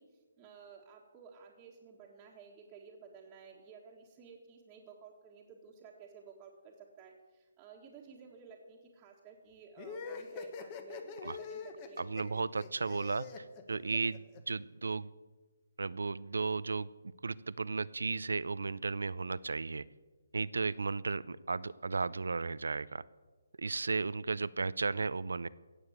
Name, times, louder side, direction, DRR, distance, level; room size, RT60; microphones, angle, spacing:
voice 1, 0.0-12.0 12.3-12.4, right 6 dB, 15° right, -5 dB, 1.6 m, -54 dB
sound 1, 9.8-14.4, left 5 dB, 25° left, 1.3 m, -44 dB
voice 2, 12.0-13.3 13.7-15.1 15.8-16.9 17.2-19.8 20.3-23.0 23.6-25.5, right 4 dB, 90° right, 19 dB, 0.6 m, -34 dB
16.5 x 7.2 x 8.0 m, 1.3 s
hypercardioid pair, 165°, 0 cm